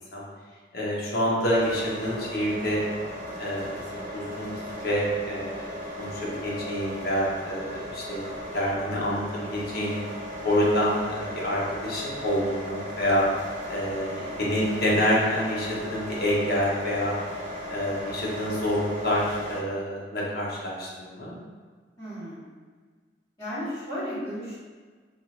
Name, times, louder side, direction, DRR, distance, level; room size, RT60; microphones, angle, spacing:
voice 1, 0.7-2.8 3.4-5.7 6.0-8.2 8.5-10.0 10.4-13.3 13.7-17.2 17.7-21.3, equal, 60° left, -5 dB, 0.9 m, -27 dB
sound 1, 1.5-19.6, equal, 50° right, 0.8 m, -37 dB
voice 2, 14.6-15.1 22.0-22.4 23.4-24.6, equal, 20° left, -15 dB, 1.5 m, -34 dB
2.8 x 2.4 x 4.1 m, 1.5 s
head